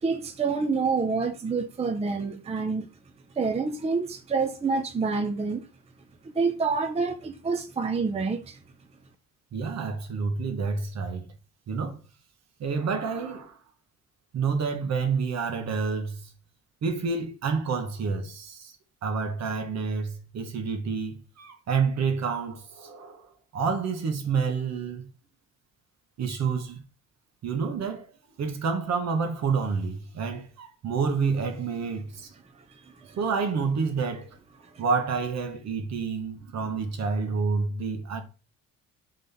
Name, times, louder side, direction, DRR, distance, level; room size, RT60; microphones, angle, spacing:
voice 1, 0.0-2.9 3.4-5.7 6.2-8.6 32.8-33.2 34.7-34.8, right 4 dB, 20° right, 0.5 m, -27 dB
voice 2, 9.5-11.3 11.7-12.0 12.6-13.6 14.3-16.3 16.8-18.7 19.0-25.1 26.2-26.8 27.4-28.1 28.4-32.3 33.2-34.4 34.8-38.2, right 5 dB, 60° right, 1.1 m, -29 dB
4.0 x 3.7 x 3.4 m
cardioid pair, 90°, 30 cm